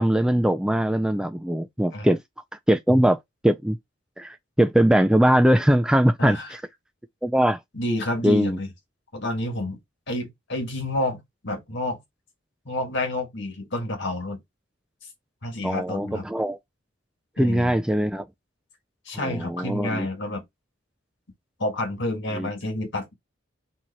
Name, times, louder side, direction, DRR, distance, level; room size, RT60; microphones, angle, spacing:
voice 1, 0.0-2.2 2.7-3.2 3.4-3.8 4.2-6.4 7.2-7.6 8.2-8.6 15.6-16.6 17.4-18.3 19.1-20.1 22.3-22.5, equal, 5° right, 0.3 m, -21 dB
voice 2, 6.2-6.5 7.7-8.7 9.1-9.8 10.1-12.0 12.7-14.4 15.4-16.3 17.4-17.7 19.1-20.4 21.6-23.1, left 1 dB, 60° left, 1.6 m, -29 dB
4.6 x 2.8 x 4.1 m
head